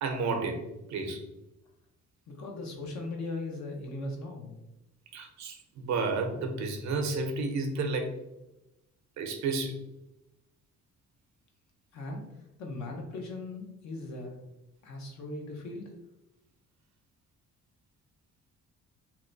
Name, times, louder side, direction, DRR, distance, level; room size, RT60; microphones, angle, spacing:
voice 1, 0.0-1.2 5.1-8.1 9.2-9.7, right 3 dB, 65° right, 5 dB, 0.7 m, -31 dB
voice 2, 2.3-4.6 11.9-12.2 12.6-14.3 14.8-15.9, left 2 dB, 65° left, 1 dB, 0.9 m, -38 dB
2.9 x 2.2 x 3.9 m, 0.93 s
cardioid pair, 90°, 30 cm